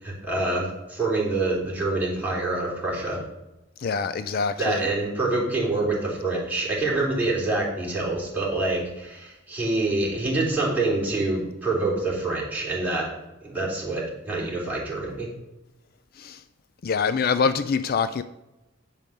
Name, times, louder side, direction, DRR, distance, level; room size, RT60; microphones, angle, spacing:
voice 1, 0.0-3.2 4.6-13.1 13.4-15.3, right 2 dB, 10° right, 3.3 m, -26 dB
voice 2, 3.8-4.9 16.2-16.4 16.8-18.2, left 5 dB, 50° left, 0.4 m, -25 dB
9.1 x 5.3 x 6.4 m
head